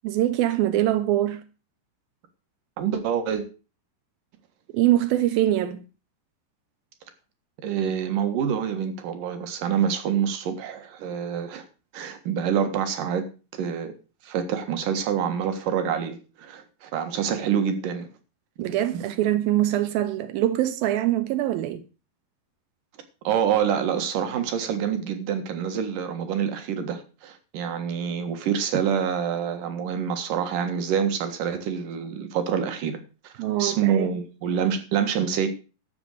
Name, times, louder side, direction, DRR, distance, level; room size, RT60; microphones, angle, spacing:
voice 1, 0.0-1.4 4.7-5.8 18.6-21.8 33.4-34.1, right 13 dB, 90° right, 2.7 m, -23 dB
voice 2, 2.8-3.4 7.6-11.7 11.9-13.3 13.5-13.9 14.2-18.1 23.2-35.5, right 8 dB, 70° right, 3.1 m, -26 dB
13.0 x 7.0 x 6.5 m
omnidirectional pair, 4.1 m